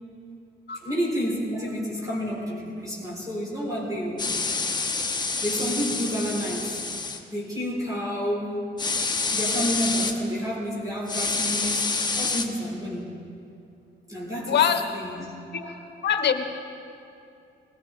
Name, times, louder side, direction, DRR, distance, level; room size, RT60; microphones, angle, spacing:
voice 1, 0.8-4.3 5.4-6.8 7.3-8.7 9.3-13.1 14.1-14.6 14.9-15.3 15.6-15.8, equal, 15° right, -5 dB, 4.2 m, -30 dB
sound 1, 4.2-7.2 8.8-10.1 11.1-12.4, left 4 dB, 20° left, 1.1 m, -27 dB
voice 2, 14.5-14.8 16.0-16.4, left 8 dB, 60° left, 7 dB, 1.2 m, -22 dB
20.5 x 14.5 x 3.6 m, 2.6 s
cardioid pair, 90°, 20 cm